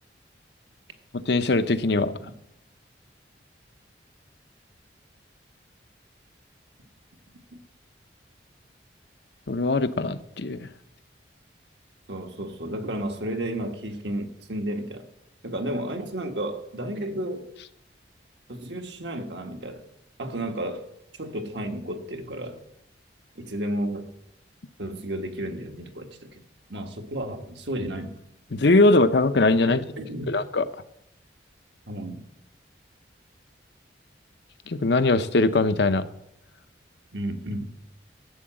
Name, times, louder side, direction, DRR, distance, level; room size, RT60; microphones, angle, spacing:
voice 1, 1.3-2.1 9.5-10.7 28.5-29.8 30.3-30.6 34.7-36.1, left 2 dB, 65° left, 0.7 m, -21 dB
voice 2, 12.1-15.0 15.4-17.5 18.5-19.8 20.2-20.9 21.2-22.6 23.3-24.1 24.8-26.4 26.7-28.1 29.6-30.4 31.9-32.2 37.1-37.7, right 1 dB, 70° right, 1.6 m, -32 dB
12.5 x 7.9 x 7.6 m
head